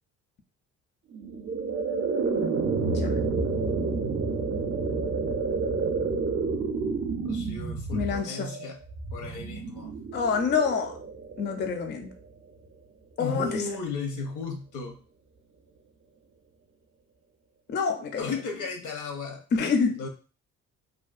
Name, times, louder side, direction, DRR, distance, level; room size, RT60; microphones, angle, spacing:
sound 1, 1.1-12.3, right 4 dB, 40° right, 0.4 m, -29 dB
voice 1, 7.2-8.8 9.1-9.9 13.2-15.0 18.2-19.4 20.0-20.1, left 4 dB, 80° left, 3 dB, 0.8 m, -35 dB
voice 2, 7.9-8.5 10.1-11.0 11.4-12.1 13.2-13.7 17.7-18.3 19.5-20.0, left 5 dB, 35° left, 6 dB, 0.4 m, -27 dB
2.6 x 2.2 x 2.4 m, 0.34 s
cardioid pair, 90°, 30 cm